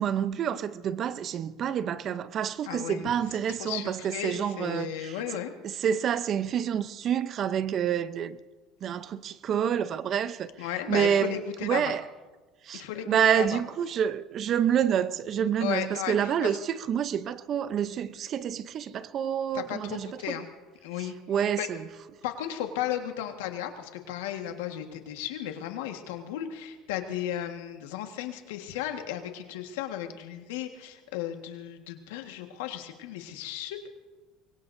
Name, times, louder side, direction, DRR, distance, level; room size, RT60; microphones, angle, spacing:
voice 1, 0.0-5.2 5.6-8.4 8.8-10.5 10.9-12.1 12.6-20.4 21.0-21.9, right 8 dB, 45° right, 0.7 m, -28 dB
voice 2, 2.7-3.0 3.5-5.5 10.6-11.9 12.7-13.6 15.6-16.5 19.5-20.5 20.8-21.7 22.2-33.9, left 11 dB, 90° left, 1.5 m, -35 dB
24.5 x 22.0 x 2.7 m
supercardioid pair, 100°, 0 cm